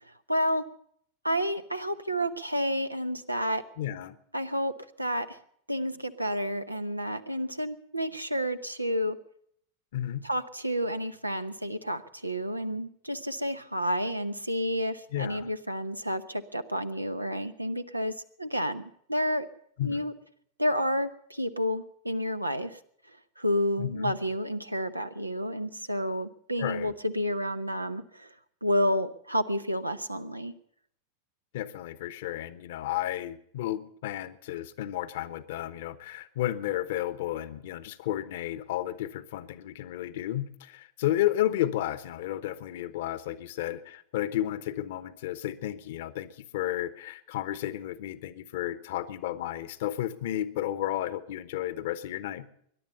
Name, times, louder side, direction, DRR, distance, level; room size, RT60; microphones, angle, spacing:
voice 1, 0.3-0.6 1.2-3.6 4.3-4.7 5.0-5.4 5.7-9.2 10.2-18.8 19.1-19.5 19.8-20.1 20.6-22.8 23.4-28.3 28.6-30.5, equal, 85° right, 10 dB, 0.9 m, -30 dB
voice 2, 3.8-4.2 9.9-10.2 15.1-15.5 19.8-20.0 23.8-24.1 26.6-26.9 31.5-52.5, left 13 dB, 55° left, 15 dB, 1.0 m, -32 dB
21.5 x 11.0 x 5.4 m, 0.67 s
figure-of-eight pair, 90°, 0 cm